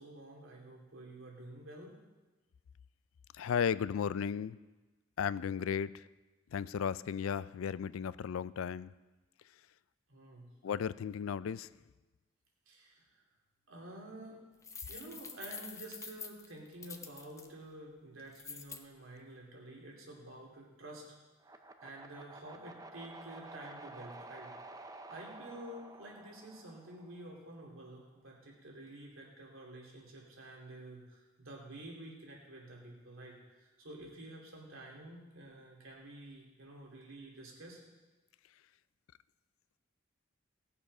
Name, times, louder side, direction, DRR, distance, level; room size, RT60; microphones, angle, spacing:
voice 1, 0.0-2.0 10.1-10.5 12.7-13.2 13.7-14.4 14.9-21.0 21.8-24.8 25.1-37.8, right 1 dB, 90° right, 3.0 m, -50 dB
voice 2, 3.3-4.6 5.2-6.1 6.5-8.9 10.6-11.7, left 7 dB, 90° left, 0.4 m, -35 dB
sound 1, 14.6-17.5 18.3-18.8, left 5 dB, 15° left, 0.7 m, -46 dB
sound 2, 21.4-27.5, right 2 dB, 20° right, 0.5 m, -51 dB
18.0 x 6.9 x 5.5 m
head